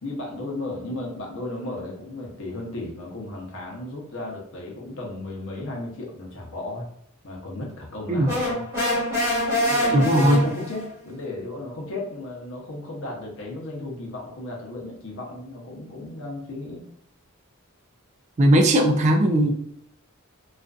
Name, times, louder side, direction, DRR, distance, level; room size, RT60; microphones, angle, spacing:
voice 1, 0.0-6.9 7.2-8.6 9.7-16.9, left 2 dB, 65° left, -1 dB, 0.7 m, -34 dB
sound 1, 8.3-10.9, left 1 dB, 15° right, 1.1 m, -25 dB
voice 2, 9.9-10.4 18.4-19.5, right 1 dB, 35° right, 3 dB, 0.3 m, -18 dB
2.4 x 2.4 x 2.3 m, 0.69 s
head